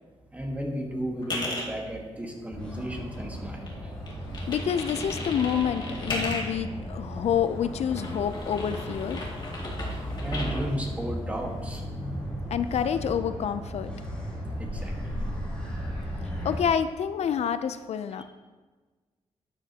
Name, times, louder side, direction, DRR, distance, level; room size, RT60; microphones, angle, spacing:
voice 1, 0.3-3.7 9.6-11.8 14.6-14.9 18.2-18.3, right 1 dB, 10° right, 1 dB, 1.5 m, -33 dB
sound 1, 1.2-1.7 2.2-3.4 3.7-6.7 7.4-10.6, left 2 dB, 40° left, 2.2 m, -36 dB
Motor vehicle (road), 2.5-16.5, equal, 10° left, 3.4 m, -36 dB
voice 2, 4.5-9.2 12.5-13.9 16.4-18.2, left 8 dB, 70° left, 11 dB, 0.4 m, -28 dB
12.5 x 9.9 x 2.8 m, 1.3 s
wide cardioid pair, 160°, 11 cm